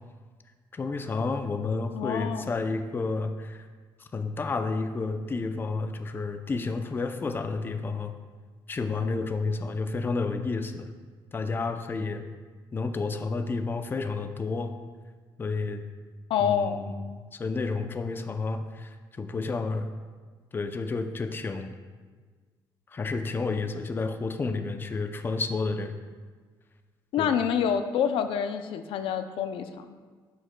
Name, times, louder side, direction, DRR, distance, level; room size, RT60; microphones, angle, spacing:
voice 1, 0.7-3.7 4.0-8.1 8.7-10.9 11.3-12.3 12.7-14.8 15.4-15.8 16.4-19.9 20.5-21.8 22.9-25.9 27.2-27.3, left 3 dB, 25° left, 7 dB, 0.4 m, -31 dB
voice 2, 1.9-2.4 16.3-16.9 27.1-30.0, left 8 dB, 90° left, 9 dB, 0.4 m, -27 dB
11.0 x 6.4 x 2.2 m, 1.5 s
cardioid pair, 125°, 9 cm